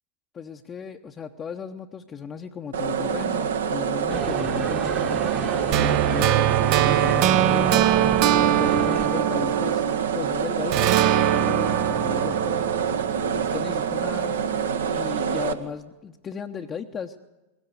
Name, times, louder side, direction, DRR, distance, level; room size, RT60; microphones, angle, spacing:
voice 1, 0.3-8.1 8.5-9.9 10.1-12.7 13.3-14.4 14.9-17.2, left 7 dB, 25° left, 2 dB, 1.0 m, -36 dB
sound 1, 2.7-15.5, right 7 dB, 65° right, 1.4 m, -26 dB
sound 2, 4.1-9.1, right 7 dB, 25° right, 1.5 m, -31 dB
sound 3, 5.7-10.3 10.7-13.8, right 12 dB, 45° right, 0.8 m, -23 dB
21.0 x 17.0 x 8.2 m, 1.0 s
figure-of-eight pair, 90°, 0 cm